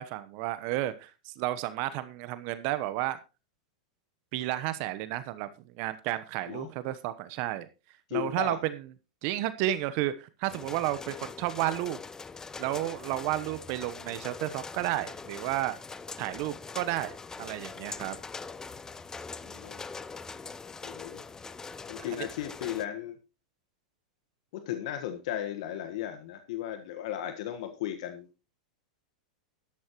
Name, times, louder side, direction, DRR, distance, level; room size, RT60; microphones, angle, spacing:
voice 1, 0.0-3.2 4.3-5.5 5.8-7.7 8.1-8.8 9.2-12.0 12.6-15.7 16.2-17.1 17.4-18.2 22.2-22.3, right 14 dB, 50° right, 13 dB, 1.0 m, -32 dB
voice 2, 8.1-8.6 19.4-19.9 20.8-21.2 21.9-23.2 24.5-28.3, left 11 dB, 65° left, 8 dB, 1.5 m, -36 dB
sound 1, 10.5-22.9, left 4 dB, 15° left, 0.7 m, -43 dB
12.0 x 12.0 x 3.1 m, 0.29 s
hypercardioid pair, 105°, 4 cm